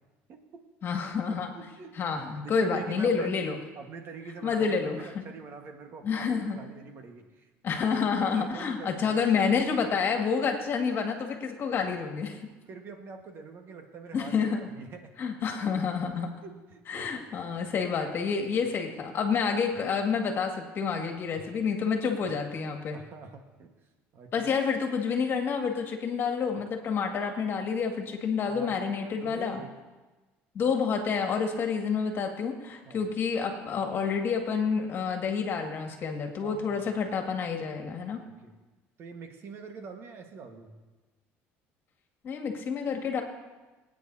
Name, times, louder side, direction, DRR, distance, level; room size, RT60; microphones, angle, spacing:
voice 1, 0.3-0.6 1.3-3.4 3.7-6.2 6.5-8.0 8.2-9.2 12.7-15.1 16.4-17.2 21.3-21.5 22.9-23.7 24.1-24.5 28.4-29.7 32.8-33.0 36.4-37.0 38.3-38.6 39.0-40.7, right 4 dB, 50° right, 4 dB, 1.5 m, -45 dB
voice 2, 0.8-1.5 1.9-3.6 4.4-5.2 6.0-6.6 7.6-12.4 14.1-14.7 15.2-16.3 16.9-23.0 24.3-29.6 30.5-38.2 42.2-43.2, left 6 dB, 45° left, 3 dB, 2.0 m, -29 dB
24.0 x 9.3 x 2.8 m, 1.2 s
cardioid pair, 115°, 5 cm